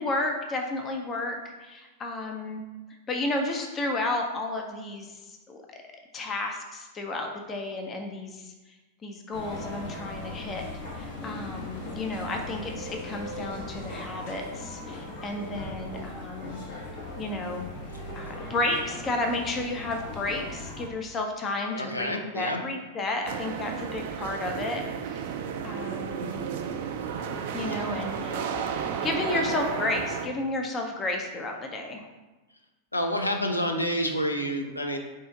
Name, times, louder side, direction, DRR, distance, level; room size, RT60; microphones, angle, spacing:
voice 1, 0.0-2.6 3.1-5.6 6.1-8.5 9.0-10.7 11.0-16.6 17.2-17.7 18.2-25.3 25.6-26.4 27.5-28.4 29.0-32.1, left 2 dB, 25° left, 3 dB, 0.5 m, -32 dB
sound 1, 9.3-20.9, left 2 dB, 60° left, 1.0 m, -39 dB
voice 2, 21.7-22.6 27.7-27.8 29.3-29.4 32.9-35.0, equal, 90° left, 4 dB, 0.4 m, -28 dB
sound 2, 23.2-30.3, right 7 dB, 55° right, 0.3 m, -33 dB
3.8 x 2.5 x 3.8 m, 1.1 s
figure-of-eight pair, 90°, 0 cm